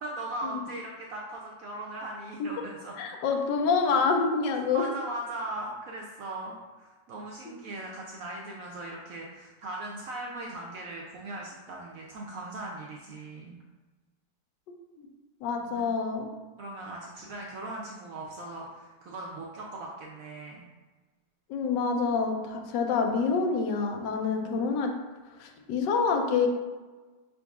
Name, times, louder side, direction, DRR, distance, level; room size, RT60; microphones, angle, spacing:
voice 1, 0.0-3.0 4.7-13.6 15.5-15.9 16.6-20.7 24.1-24.6, right 2 dB, 75° right, -2 dB, 0.8 m, -39 dB
voice 2, 3.0-4.9 7.5-7.6 15.0-15.1 15.4-16.3 21.5-24.9 25.4-26.5, left 5 dB, 80° left, 3 dB, 1.2 m, -27 dB
5.2 x 3.8 x 2.3 m, 1.3 s
omnidirectional pair, 1.9 m